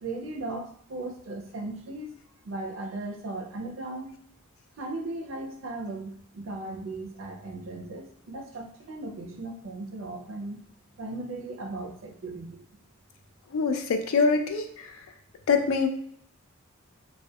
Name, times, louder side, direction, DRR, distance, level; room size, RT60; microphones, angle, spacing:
voice 1, 0.0-2.2 2.4-4.2 4.8-10.6 11.0-12.6, right 2 dB, 70° right, 3 dB, 0.4 m, -37 dB
voice 2, 13.5-14.9 15.5-15.9, left 4 dB, 90° left, 6 dB, 0.4 m, -24 dB
2.2 x 2.1 x 2.7 m, 0.68 s
head